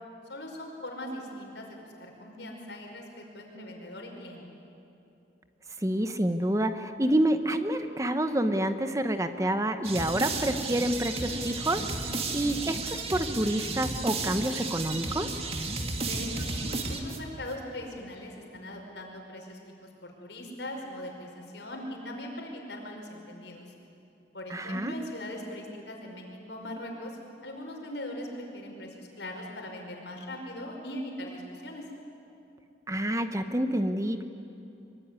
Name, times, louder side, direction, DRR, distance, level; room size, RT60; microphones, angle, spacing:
voice 1, 0.3-4.4 16.0-23.7 24.3-31.8, left 1 dB, 80° left, 1 dB, 5.4 m, -40 dB
voice 2, 5.8-15.4 24.5-24.9 32.9-34.2, right 1 dB, 15° right, 9 dB, 1.0 m, -28 dB
sound 1, 9.8-17.5, right 3 dB, 35° right, 2.1 m, -33 dB
24.5 x 23.5 x 9.7 m, 2.8 s
head